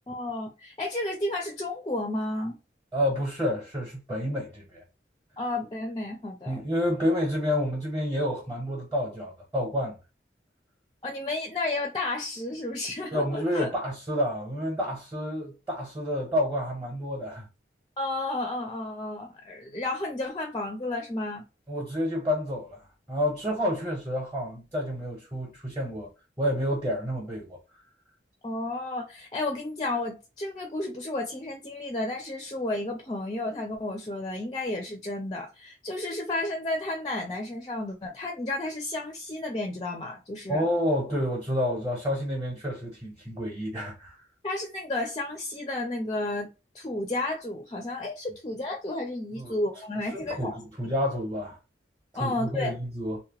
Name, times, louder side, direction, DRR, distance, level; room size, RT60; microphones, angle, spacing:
voice 1, 0.1-2.6 5.4-6.5 11.0-13.7 18.0-21.4 28.4-40.6 44.4-46.5 46.7-50.6 52.1-52.7, left 2 dB, 25° left, 0.4 m, -32 dB
voice 2, 2.9-4.8 6.5-10.0 13.1-17.5 21.7-22.8 23.1-26.1 26.4-27.6 40.5-44.2 49.4-49.6 50.1-51.6 52.2-53.2, equal, 15° right, 0.8 m, -29 dB
2.8 x 2.1 x 2.9 m
head